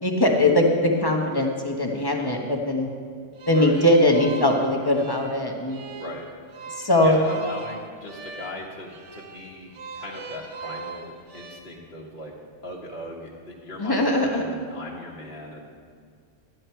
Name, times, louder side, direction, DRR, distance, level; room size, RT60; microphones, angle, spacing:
voice 1, 0.0-2.9 3.5-5.8 6.7-7.2 13.8-14.4, left 1 dB, 20° left, 1 dB, 1.1 m, -21 dB
sound 1, 3.4-11.6, right 4 dB, 70° right, 1.2 m, -39 dB
voice 2, 6.0-6.3 7.0-12.3 12.6-15.7, left 2 dB, 45° left, -4 dB, 1.4 m, -38 dB
12.0 x 10.0 x 4.5 m, 2.1 s
omnidirectional pair, 1.3 m